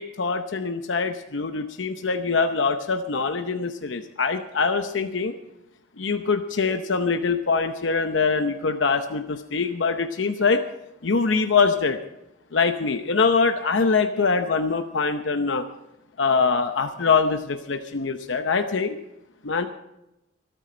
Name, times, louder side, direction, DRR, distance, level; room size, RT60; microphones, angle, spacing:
voice 1, 0.0-5.3 6.0-10.7 11.0-12.0 12.5-15.6 16.2-19.0 19.4-19.7, left 4 dB, 85° left, 7 dB, 0.8 m, -23 dB
24.5 x 9.0 x 4.4 m, 0.90 s
head